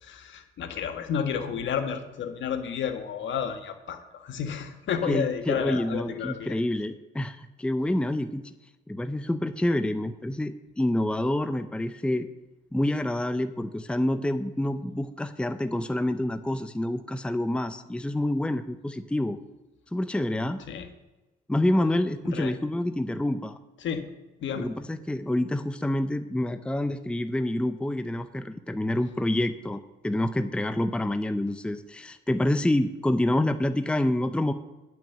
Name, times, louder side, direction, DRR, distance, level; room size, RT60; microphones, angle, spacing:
voice 1, 0.0-6.5 20.7-20.9 22.2-22.5 23.8-24.0 24.4-24.7, left 7 dB, 70° left, 7 dB, 1.5 m, -31 dB
voice 2, 5.1-8.5 8.9-12.3 12.7-19.4 19.9-20.6 21.5-23.6 24.5-34.5, left 1 dB, 5° left, 10 dB, 0.6 m, -27 dB
10.5 x 6.3 x 7.1 m, 1.1 s
cardioid pair, 90°, 20 cm